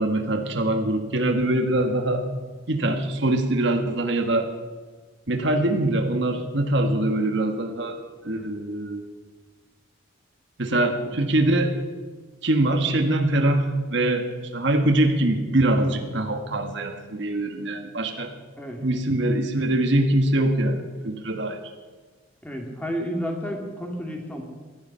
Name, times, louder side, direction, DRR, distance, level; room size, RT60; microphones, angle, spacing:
voice 1, 0.0-2.3 2.7-4.5 5.3-9.0 10.6-11.8 12.4-14.3 14.5-18.3 18.8-21.6, right 1 dB, 55° right, 5 dB, 1.5 m, -23 dB
voice 2, 22.4-24.4, equal, 5° left, 1 dB, 2.2 m, -31 dB
18.0 x 13.0 x 5.6 m, 1.4 s
head